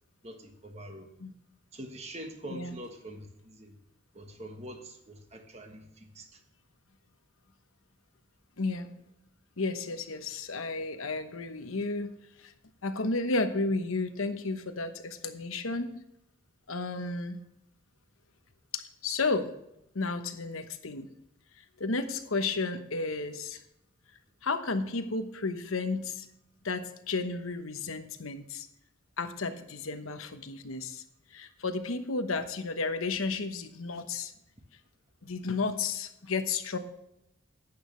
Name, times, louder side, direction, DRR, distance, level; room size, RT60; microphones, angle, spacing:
voice 1, 0.2-1.1 1.7-3.8 4.1-6.4, right 1 dB, 30° right, 5 dB, 1.3 m, -44 dB
voice 2, 8.6-8.9 9.6-12.1 12.4-12.5 12.8-15.9 16.7-17.4 18.7-19.5 19.9-21.1 21.6-23.6 24.4-26.3 26.6-28.7 29.2-31.0 31.3-34.3 35.2-36.8, left 3 dB, 90° left, 8 dB, 1.0 m, -32 dB
11.5 x 8.7 x 3.2 m, 0.83 s
head